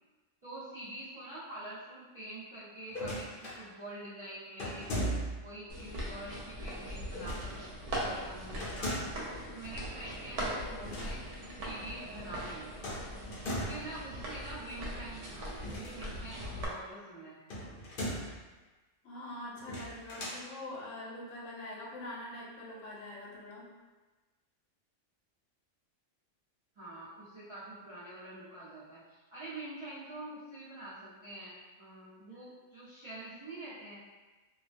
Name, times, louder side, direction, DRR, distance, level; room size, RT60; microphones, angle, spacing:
voice 1, 0.4-4.9 5.4-9.0 9.5-12.8 13.6-17.4 26.7-34.0, right 1 dB, 35° right, -13 dB, 0.5 m, -46 dB
sound 1, 2.9-3.6 4.6-5.5 7.1-7.6 8.6-9.3 10.7-11.1 11.4-11.5 12.8-13.9 15.5-16.4 17.5-18.4 19.6-20.4, equal, 55° left, 0.7 m, -38 dB
sound 2, 5.7-16.7, equal, 75° right, 0.9 m, -40 dB
voice 2, 19.0-23.7, left 1 dB, 80° left, -3 dB, 1.0 m, -44 dB
2.3 x 2.2 x 2.5 m, 1.2 s
omnidirectional pair, 1.3 m